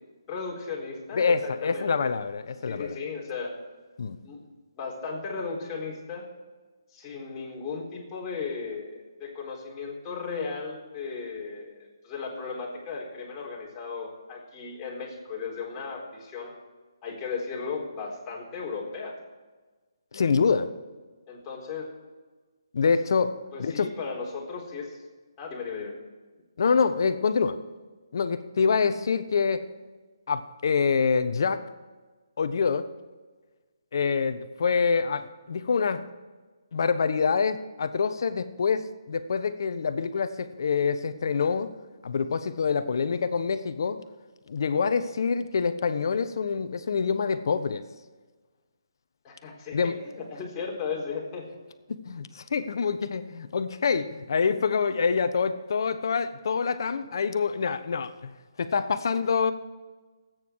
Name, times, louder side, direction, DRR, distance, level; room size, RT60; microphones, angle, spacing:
voice 1, 0.3-2.1 2.7-3.5 4.2-4.4 4.8-6.3 6.9-16.6 17.0-19.2 21.3-21.9 23.5-25.0 25.4-25.9 49.2-51.4, left 5 dB, 20° left, -4 dB, 4.3 m, -36 dB
voice 2, 1.1-2.9 4.0-4.2 20.1-20.7 22.7-23.9 26.6-27.6 28.1-29.7 30.3-31.6 32.4-32.9 33.9-36.0 36.7-41.7 42.0-44.0 44.5-47.8 49.7-49.9 51.9-58.3 58.6-59.5, left 5 dB, 60° left, 11 dB, 1.1 m, -26 dB
25.5 x 9.3 x 4.8 m, 1.3 s
hypercardioid pair, 155°, 2 cm